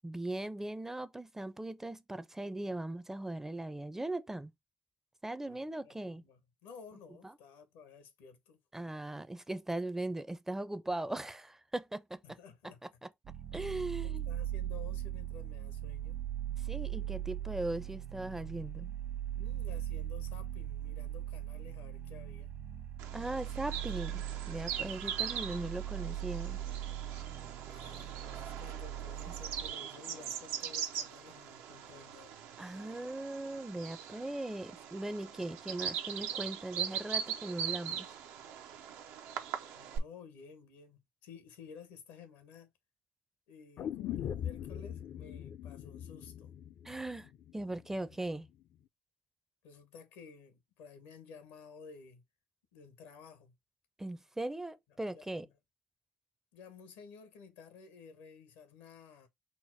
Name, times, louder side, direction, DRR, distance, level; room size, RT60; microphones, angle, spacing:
voice 1, 0.0-4.5 5.2-6.2 7.2-7.3 8.7-12.2 13.0-13.1 13.5-14.3 16.6-18.9 23.1-26.6 32.6-38.1 46.8-48.5 54.0-55.5, right 2 dB, 10° right, 0.4 m, -39 dB
voice 2, 5.5-8.6 12.2-12.8 14.0-16.2 19.3-22.5 27.7-32.5 32.8-33.0 39.7-42.7 43.5-46.5 49.6-52.2 52.7-53.6 55.1-55.6 56.5-59.3, left 6 dB, 90° left, 1.0 m, -54 dB
sound 1, 13.2-29.7, right 11 dB, 60° right, 1.1 m, -40 dB
Bird vocalization bird call bird song, 23.0-40.0, right 9 dB, 80° right, 0.6 m, -41 dB
sound 2, 43.8-47.8 48.1-48.2, left 10 dB, 60° left, 0.4 m, -41 dB
4.2 x 2.1 x 4.5 m
supercardioid pair, 75°, 4 cm